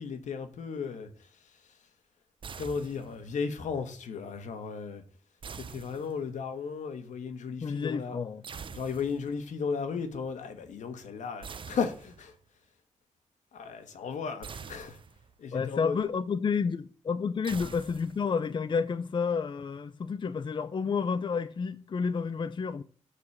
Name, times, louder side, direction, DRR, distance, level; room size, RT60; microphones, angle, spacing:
voice 1, 0.0-1.8 2.6-5.0 5.5-8.2 8.7-12.3 13.5-15.0 15.4-16.0, left 5 dB, 85° left, 1.4 m, -35 dB
sound 1, 2.4-3.4 5.4-6.5 8.4-9.4 11.4-12.4 14.4-15.4 17.4-18.4, right 6 dB, 45° right, 0.5 m, -45 dB
voice 2, 7.6-8.4 15.5-22.8, left 5 dB, 40° left, 0.5 m, -30 dB
8.2 x 4.8 x 7.2 m
cardioid pair, 100°, 12 cm